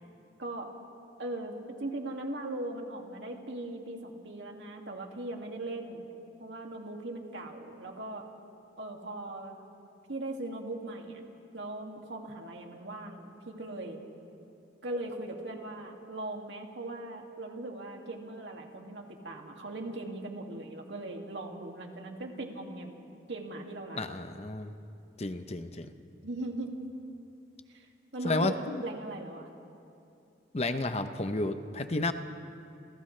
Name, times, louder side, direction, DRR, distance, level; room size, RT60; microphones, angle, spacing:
voice 1, 1.2-6.1 6.4-8.2 8.8-9.6 10.1-11.2 11.5-14.0 14.8-24.0 26.2-26.7 27.7-29.5, right 2 dB, 75° right, 1 dB, 2.3 m, -39 dB
voice 2, 23.9-24.7 25.2-25.9 28.2-28.8 30.5-32.1, left 2 dB, 35° left, 9 dB, 0.8 m, -31 dB
29.5 x 28.0 x 3.3 m, 2.6 s
head